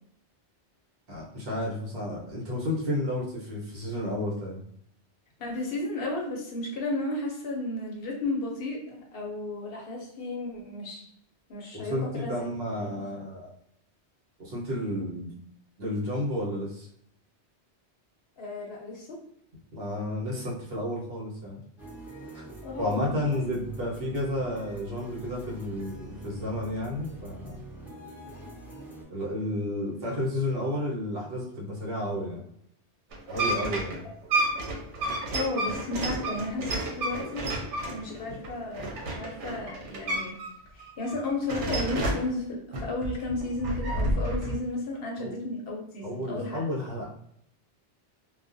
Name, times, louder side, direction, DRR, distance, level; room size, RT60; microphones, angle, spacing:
voice 1, 1.1-4.6 11.7-13.5 14.4-15.3 15.8-16.9 19.7-21.6 22.3-22.4 22.8-27.6 29.1-32.4 33.3-34.1 45.2-45.3 46.0-47.1, left 1 dB, 60° right, -4 dB, 1.1 m, -32 dB
voice 2, 5.4-11.0 11.5-12.4 12.8-13.0 18.4-19.2 22.6-23.4 35.3-37.5 37.9-40.4 40.7-46.6, left 2 dB, 60° left, -1 dB, 0.8 m, -33 dB
sound 1, 21.8-29.0, right 1 dB, ahead, 0.6 m, -45 dB
sound 2, 33.1-40.5 40.8-42.3 42.7-44.6, right 1 dB, 85° right, 1.0 m, -31 dB
2.3 x 2.2 x 2.5 m, 0.71 s
omnidirectional pair, 1.2 m